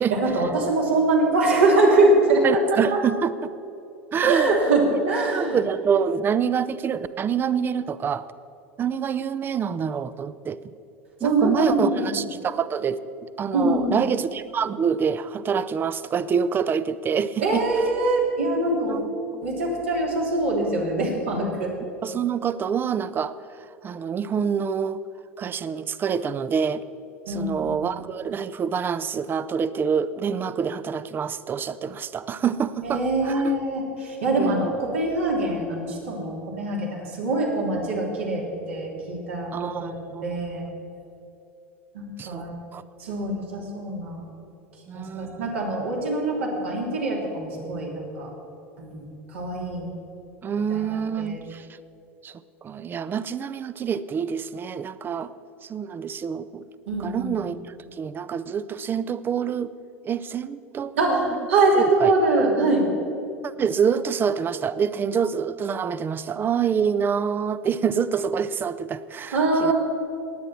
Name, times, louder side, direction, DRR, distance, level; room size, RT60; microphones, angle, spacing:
voice 1, 0.1-3.0 4.2-5.6 11.2-12.2 13.5-14.0 17.4-19.0 19.4-21.7 27.3-27.8 32.8-40.7 41.9-42.5 43.0-44.2 44.9-48.3 48.8-49.0 49.3-49.9 50.7-50.8 51.2-51.4 56.9-57.5 61.0-62.8 69.3-69.7, right 2 dB, 75° right, -3 dB, 3.1 m, -23 dB
voice 2, 2.4-3.5 4.1-4.6 4.9-5.0 5.3-8.3 8.8-10.7 11.2-17.6 18.9-19.0 22.0-23.3 23.8-25.0 25.4-26.8 27.3-33.5 34.4-34.7 39.5-40.2 42.2-42.5 42.7-42.8 44.9-45.5 50.4-51.7 52.2-55.3 55.6-56.7 57.0-57.6 57.9-59.7 60.0-61.4 61.8-62.5 63.4-69.7, right 7 dB, 30° right, 15 dB, 0.6 m, -26 dB
19.0 x 9.0 x 4.3 m, 2.8 s
hypercardioid pair, 80°, 7 cm